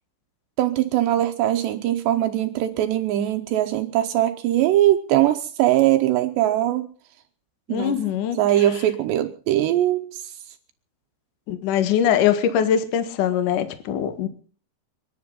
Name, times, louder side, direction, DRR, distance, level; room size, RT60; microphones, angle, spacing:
voice 1, 0.6-6.9 7.7-8.0 8.4-10.2, right 13 dB, 75° right, 7 dB, 2.7 m, -21 dB
voice 2, 7.7-8.4 11.5-14.3, left 9 dB, 65° left, 10 dB, 2.1 m, -22 dB
30.0 x 10.5 x 4.0 m, 0.41 s
omnidirectional pair, 5.8 m